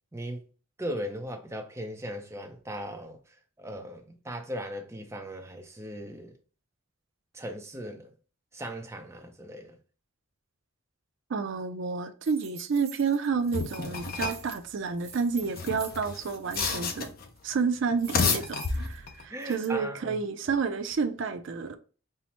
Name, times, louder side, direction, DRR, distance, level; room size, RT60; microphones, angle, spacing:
voice 1, 0.1-0.4 0.8-3.2 3.6-6.3 7.3-8.1 8.5-9.8 18.2-18.4 19.3-20.2, equal, 15° right, 0.6 m, -38 dB
voice 2, 11.3-17.1 17.4-18.4 18.7-21.8, right 5 dB, 60° right, 0.4 m, -30 dB
sound 1, 12.2-13.9 14.2-17.1 17.4-17.6 18.0-19.7, right 6 dB, 30° right, 1.1 m, -48 dB
sound 2, 13.5-14.5 15.4-17.3 17.9-19.2, left 4 dB, 45° left, 0.5 m, -30 dB
5.5 x 2.1 x 3.0 m
head